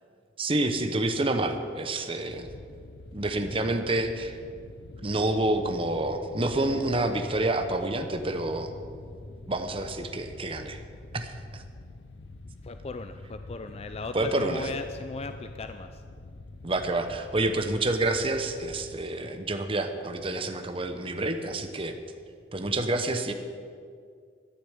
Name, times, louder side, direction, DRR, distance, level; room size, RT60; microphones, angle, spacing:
voice 1, 0.4-2.5 3.1-4.4 5.0-8.7 9.5-10.8 11.1-11.6 14.1-14.7 16.6-21.9 22.5-23.3, right 2 dB, 30° right, 7 dB, 0.9 m, -28 dB
sound 1, 2.3-19.0, left 2 dB, 85° left, 0.8 m, -45 dB
voice 2, 12.6-16.0, left 3 dB, 35° left, 8 dB, 0.4 m, -37 dB
12.5 x 7.0 x 9.6 m, 2.2 s
head